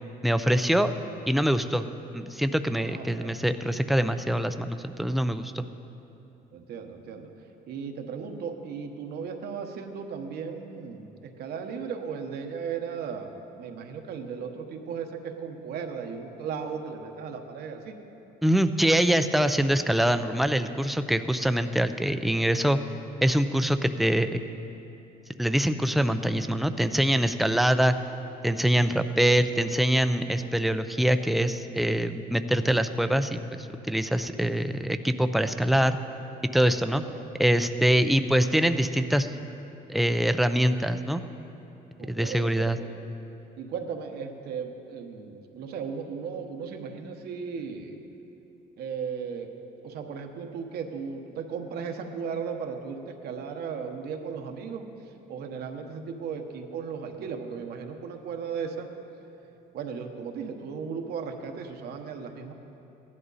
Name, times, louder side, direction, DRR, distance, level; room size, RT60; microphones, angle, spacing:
voice 1, 0.2-0.9 1.3-1.9 2.1-5.6 18.4-22.8 23.2-24.4 25.4-27.9 28.4-36.0 36.5-37.0 37.4-39.3 39.9-41.2 42.1-42.8, right 1 dB, ahead, 10 dB, 0.5 m, -24 dB
voice 2, 2.8-3.4 6.5-7.3 7.7-17.9 37.0-37.3 38.0-38.2 42.0-43.0 43.6-48.0 48.8-49.5 49.8-58.9 59.7-62.5, right 6 dB, 70° right, 4 dB, 1.1 m, -36 dB
16.0 x 11.0 x 4.1 m, 3.0 s
cardioid pair, 110°, 17 cm